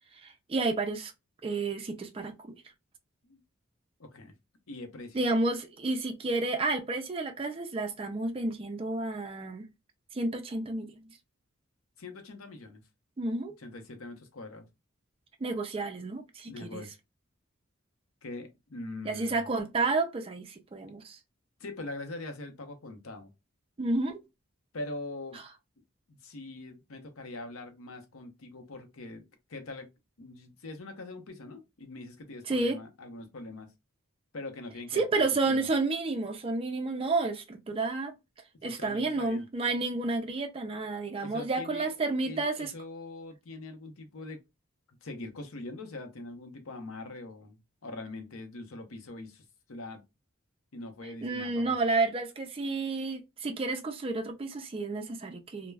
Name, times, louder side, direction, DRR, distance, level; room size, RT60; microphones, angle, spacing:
voice 1, 0.2-1.1 1.4-2.5 5.1-9.7 10.1-11.2 13.2-13.5 15.4-16.9 19.0-21.2 23.8-24.2 25.3-25.4 32.5-32.8 34.9-38.1 38.6-42.7 51.2-55.7, right 3 dB, 25° right, 0.3 m, -31 dB
voice 2, 4.0-4.3 4.7-5.2 12.0-12.8 13.6-14.7 16.5-16.9 18.2-19.4 21.6-23.3 24.7-25.4 26.1-29.2 29.5-29.9 30.2-33.7 34.3-35.7 38.6-39.4 41.2-44.4 45.0-49.4 49.7-50.0 50.7-51.7, left 2 dB, 80° left, 0.7 m, -42 dB
2.2 x 2.1 x 3.2 m
head